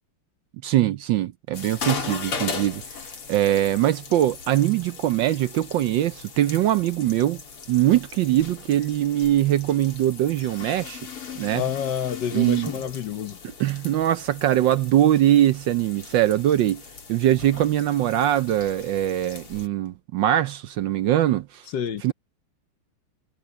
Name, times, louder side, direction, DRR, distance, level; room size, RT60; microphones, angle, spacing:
voice 1, 0.6-3.0 3.3-7.4 7.7-11.0 11.4-11.6 12.3-12.7 13.6-16.8 17.1-21.6 22.0-22.1, right 12 dB, 70° right, 1.2 m, -22 dB
sound 1, 1.5-19.7, left 5 dB, 80° left, 3.6 m, -38 dB
voice 2, 11.5-13.4 21.7-22.0, left 8 dB, 60° left, 1.4 m, -28 dB
omnidirectional pair, 2.4 m